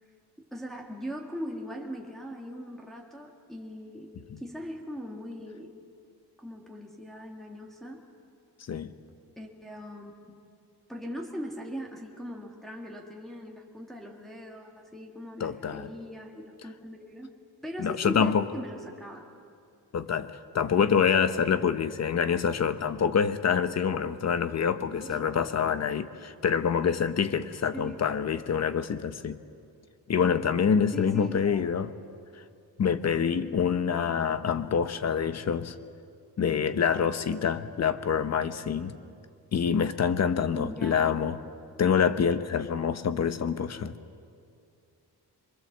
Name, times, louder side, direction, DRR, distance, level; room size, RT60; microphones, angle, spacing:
voice 1, 0.5-5.7 6.4-8.0 9.4-10.5 10.9-17.3 17.6-19.3 25.0-25.3 27.7-28.1 30.9-31.6 33.1-33.6 40.5-41.2, equal, ahead, -1 dB, 1.9 m, -40 dB
voice 2, 15.4-15.9 17.8-18.4 19.9-29.4 30.1-31.9 32.8-35.7 36.4-38.9 39.5-41.4 41.8-44.0, left 7 dB, 40° left, 11 dB, 0.9 m, -26 dB
24.0 x 22.5 x 7.3 m, 2.4 s
wide cardioid pair, 160°, 39 cm